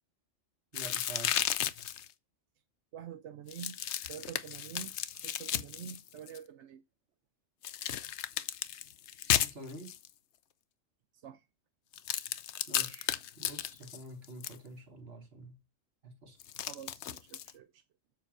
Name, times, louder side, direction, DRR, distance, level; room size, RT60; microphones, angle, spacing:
sound 1, 0.7-2.1 3.5-6.4 7.6-10.1 11.9-14.6 16.4-17.5, left 10 dB, 65° left, 0.9 m, -34 dB
voice 1, 0.7-1.3 9.3-9.9 12.7-13.1 13.4-15.6 16.0-16.4, right 1 dB, 50° right, 1.9 m, -47 dB
voice 2, 2.9-3.8 4.1-4.9 5.2-6.8 11.2-11.4 16.7-17.8, right 9 dB, 70° right, 0.9 m, -46 dB
7.6 x 5.1 x 6.2 m
omnidirectional pair, 1.3 m